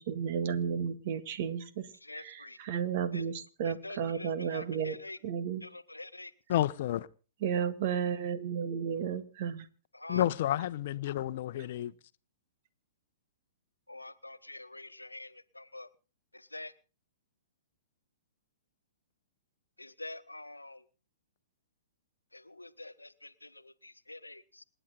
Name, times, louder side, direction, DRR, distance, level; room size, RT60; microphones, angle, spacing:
voice 1, 0.0-1.6 2.1-5.0 5.2-5.6 7.4-9.6, right 7 dB, 45° right, 1.9 m, -33 dB
voice 2, 2.0-2.6 3.1-3.2 3.6-5.2 5.6-6.3 9.9-10.3 13.9-15.9 16.3-16.7 19.8-20.8 22.3-24.6, left 2 dB, 90° left, 1.1 m, -46 dB
voice 3, 6.5-7.1 10.1-11.9, left 12 dB, 50° left, 0.9 m, -30 dB
27.5 x 10.0 x 3.9 m
figure-of-eight pair, 115°, 0 cm